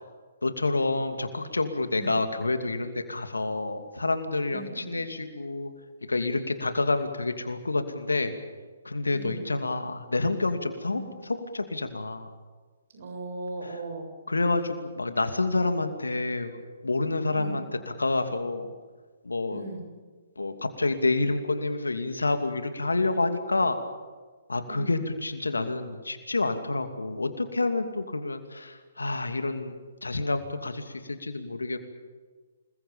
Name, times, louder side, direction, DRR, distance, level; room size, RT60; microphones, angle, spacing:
voice 1, 0.4-5.7 6.1-8.3 8.8-12.3 14.3-17.6 18.0-18.7 19.2-19.6 20.4-23.8 24.5-29.7 30.0-31.8, left 2 dB, 85° left, 8 dB, 2.8 m, -28 dB
voice 2, 4.5-5.0 9.1-9.4 10.9-11.1 12.9-14.1 17.3-17.6 19.5-19.8 24.7-25.0, right 2 dB, 55° right, 4 dB, 7.3 m, -38 dB
27.5 x 22.0 x 7.1 m, 1.4 s
figure-of-eight pair, 130°, 0 cm